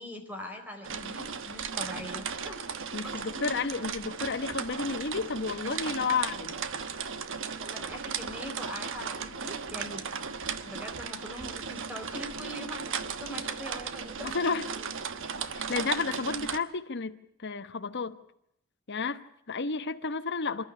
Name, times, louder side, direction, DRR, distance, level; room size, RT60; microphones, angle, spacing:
voice 1, 0.0-2.6 3.0-3.5 6.1-6.2 7.6-10.1 10.6-14.3 14.8-14.9, left 1 dB, 10° right, 4.4 m, -42 dB
sound 1, 0.8-16.6, right 6 dB, 65° right, 1.2 m, -36 dB
voice 2, 2.9-6.6 14.2-14.7 15.5-17.1 17.4-18.1 18.9-20.7, left 4 dB, 55° left, 1.1 m, -31 dB
27.5 x 12.0 x 9.6 m
head